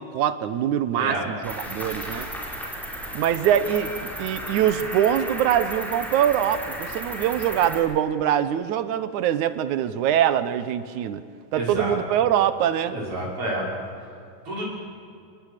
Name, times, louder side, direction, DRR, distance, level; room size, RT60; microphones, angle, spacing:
voice 1, 0.0-2.3 3.1-3.9 4.2-11.2 11.5-13.0, right 10 dB, 70° right, 13 dB, 2.2 m, -23 dB
Cricket, 1.4-7.8, equal, ahead, 4.4 m, -34 dB
voice 2, 11.6-12.0 12.9-13.6 14.5-14.6, right 1 dB, 40° right, -3 dB, 6.9 m, -29 dB
29.5 x 19.5 x 6.6 m, 2.3 s
omnidirectional pair, 3.8 m